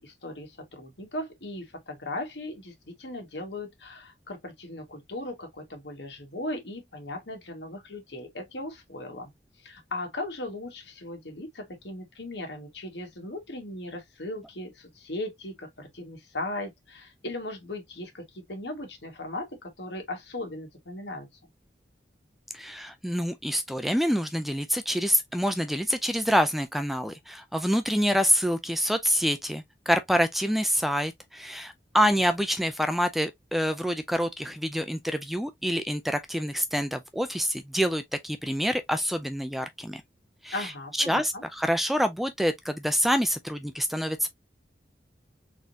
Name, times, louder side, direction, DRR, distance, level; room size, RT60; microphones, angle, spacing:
voice 1, 0.0-9.3 9.6-21.3 40.5-41.4, left 1 dB, 80° left, 1.8 m, -38 dB
voice 2, 22.5-40.0 40.4-40.7 41.1-44.3, equal, ahead, 0.4 m, -27 dB
4.2 x 3.8 x 2.7 m
head